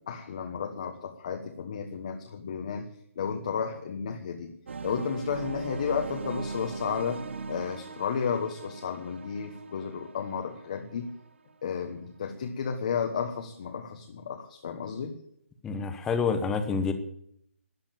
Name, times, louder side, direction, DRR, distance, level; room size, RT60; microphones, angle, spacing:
voice 1, 0.1-2.9 3.2-4.5 4.8-7.2 7.5-11.1 11.6-15.2, left 6 dB, 35° left, 4 dB, 1.3 m, -32 dB
sound 1, 4.7-11.5, right 4 dB, 55° right, 1.3 m, -40 dB
voice 2, 15.6-16.9, left 5 dB, 5° left, 9 dB, 0.9 m, -27 dB
13.5 x 9.8 x 9.0 m, 0.70 s
hypercardioid pair, 170°, 7 cm